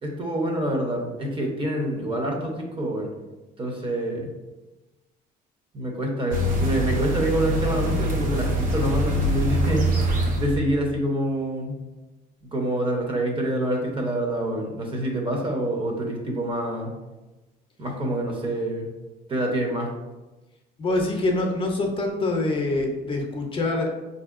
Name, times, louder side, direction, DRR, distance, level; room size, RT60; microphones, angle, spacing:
voice 1, 0.0-3.1 3.6-4.3 5.7-9.9 10.4-11.8 12.5-16.9 17.8-18.9 19.3-19.9, right 1 dB, 30° right, 1 dB, 0.8 m, -26 dB
sound 1, 6.3-10.6, equal, 55° right, 0.8 m, -24 dB
voice 2, 20.8-23.9, left 2 dB, 30° left, 2 dB, 0.6 m, -25 dB
4.3 x 2.7 x 2.4 m, 1.1 s
cardioid pair, 110°, 17 cm